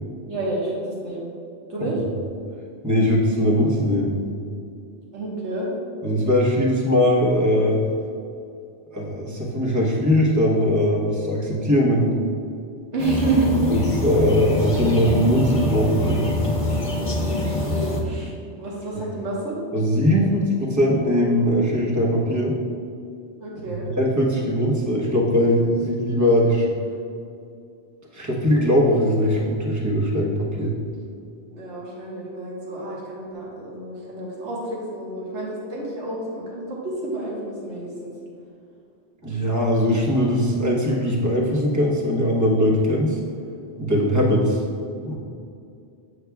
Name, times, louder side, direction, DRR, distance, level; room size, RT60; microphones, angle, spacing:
voice 1, 0.3-1.2 1.7-2.0 5.1-5.7 12.9-13.5 17.1-19.6 23.4-23.9 31.5-38.1, right 2 dB, 85° right, -4 dB, 1.5 m, -29 dB
voice 2, 2.8-4.2 6.0-7.8 8.9-12.1 13.7-16.3 19.7-22.5 23.9-26.7 28.1-30.8 39.2-43.2 43.8-44.6 45.0-45.1, equal, 15° right, -3 dB, 0.9 m, -20 dB
sound 1, 13.0-18.0, left 2 dB, 35° left, 0.8 m, -25 dB
8.0 x 6.6 x 2.3 m, 2.5 s
omnidirectional pair, 1.2 m